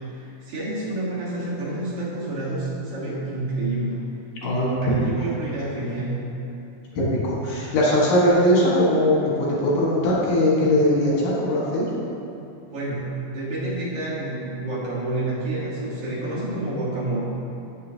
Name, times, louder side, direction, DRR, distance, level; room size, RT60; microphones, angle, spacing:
voice 1, 0.0-4.0 4.4-4.7 5.1-6.3 12.7-13.0 13.3-17.2, right 2 dB, 55° right, -8 dB, 2.3 m, -29 dB
voice 2, 7.0-11.9, left 1 dB, 85° left, -6 dB, 3.1 m, -20 dB
7.4 x 6.7 x 2.8 m, 2.9 s
omnidirectional pair, 3.6 m